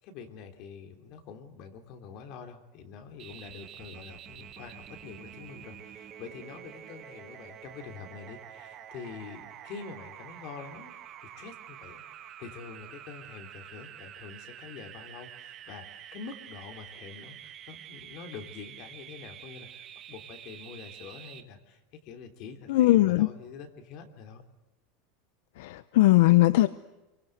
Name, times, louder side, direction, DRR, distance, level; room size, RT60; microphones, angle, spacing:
voice 1, 0.0-10.9 11.2-12.0 12.4-24.4, left 6 dB, 40° left, 5 dB, 3.3 m, -46 dB
sound 1, 3.2-21.4, right 10 dB, 30° right, 1.7 m, -47 dB
voice 2, 22.7-23.3 25.6-26.7, left 17 dB, 65° left, 13 dB, 0.9 m, -20 dB
28.0 x 24.0 x 8.1 m, 1.0 s
supercardioid pair, 175°, 0 cm